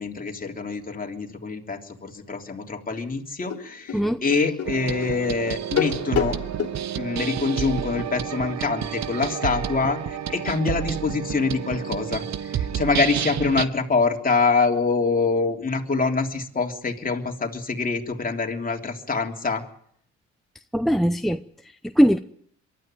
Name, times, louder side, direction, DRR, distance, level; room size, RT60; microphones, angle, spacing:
voice 1, 0.0-6.4 7.0-19.6, left 4 dB, 30° left, 3.4 m, -25 dB
sound 1, 2.9-3.0 3.5-6.8, left 8 dB, 55° left, 2.7 m, -29 dB
sound 2, 4.6-13.7, right 9 dB, 65° right, 1.0 m, -30 dB
voice 2, 20.7-22.2, equal, ahead, 0.8 m, -21 dB
23.5 x 13.0 x 9.1 m
cardioid pair, 90°, 30 cm